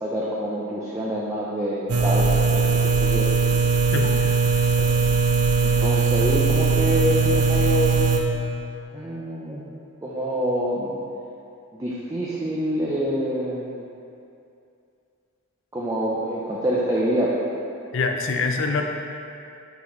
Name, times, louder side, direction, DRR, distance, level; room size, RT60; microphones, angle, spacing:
voice 1, 0.0-3.3 4.8-5.0 5.6-8.2 8.9-9.6 10.0-10.9 11.7-13.8 15.7-17.3, equal, 15° right, -6 dB, 0.4 m, -26 dB
sound 1, 1.9-8.2, right 4 dB, 85° right, 0.6 m, -20 dB
voice 2, 17.9-18.8, left 4 dB, 55° left, 3 dB, 0.5 m, -24 dB
8.4 x 4.1 x 3.1 m, 2.6 s
head